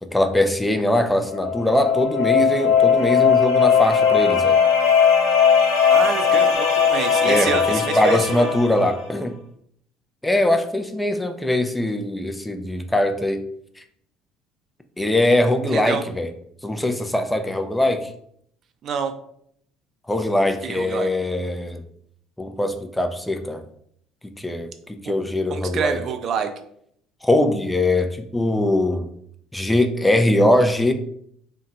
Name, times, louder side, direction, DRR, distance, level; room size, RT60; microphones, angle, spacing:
voice 1, 0.0-4.6 7.2-9.3 10.2-13.4 15.0-16.3 16.6-18.1 20.1-21.8 22.4-23.6 24.4-26.0 27.2-29.1 29.5-30.9, left 1 dB, 10° left, 6 dB, 0.4 m, -21 dB
sound 1, 1.3-9.0, left 7 dB, 75° left, 0.6 m, -18 dB
voice 2, 5.9-8.5 15.7-16.0 18.8-19.1 20.6-21.1 25.0-25.1 25.5-26.5, right 7 dB, 50° right, 7 dB, 0.4 m, -27 dB
2.6 x 2.2 x 3.8 m, 0.69 s
hypercardioid pair, 70°, 0 cm